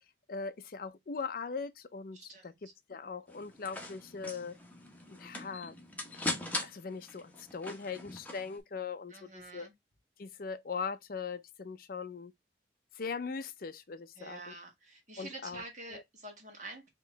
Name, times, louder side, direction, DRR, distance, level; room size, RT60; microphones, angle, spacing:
voice 1, 0.3-4.6 5.1-5.7 6.6-9.7 10.2-12.3 13.0-14.5 15.2-15.6 15.9-16.0, left 5 dB, 55° left, 0.5 m, -40 dB
voice 2, 2.1-2.6 9.1-9.7 14.2-16.9, right 2 dB, 45° right, 1.8 m, -47 dB
sound 1, 3.3-8.6, left 2 dB, 10° left, 1.0 m, -41 dB
4.7 x 3.0 x 3.3 m
head